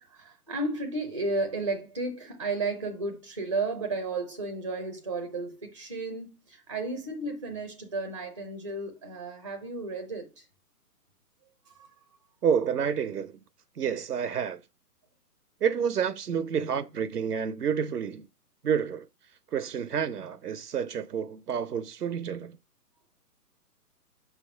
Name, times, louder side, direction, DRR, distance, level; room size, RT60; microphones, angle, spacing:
voice 1, 0.0-10.4 11.7-11.9, right 3 dB, 20° right, 0.4 m, -33 dB
voice 2, 12.4-13.4 13.8-14.6 15.6-18.3 18.6-19.1 19.5-22.6, right 7 dB, 80° right, 0.7 m, -29 dB
5.7 x 3.5 x 5.6 m
figure-of-eight pair, 130°, 46 cm